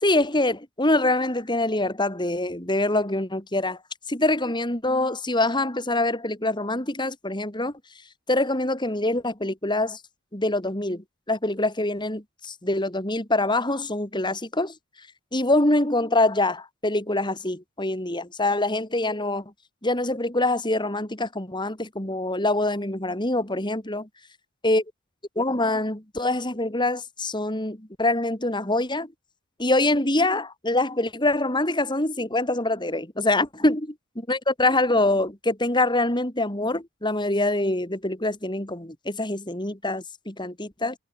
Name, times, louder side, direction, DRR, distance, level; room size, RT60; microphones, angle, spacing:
voice 1, 0.0-3.8 4.1-7.7 8.3-10.0 10.3-14.7 15.3-19.5 19.8-24.1 24.6-24.8 25.4-29.1 29.6-33.9 34.3-41.0, left 2 dB, 20° left, 3.5 m, -24 dB
head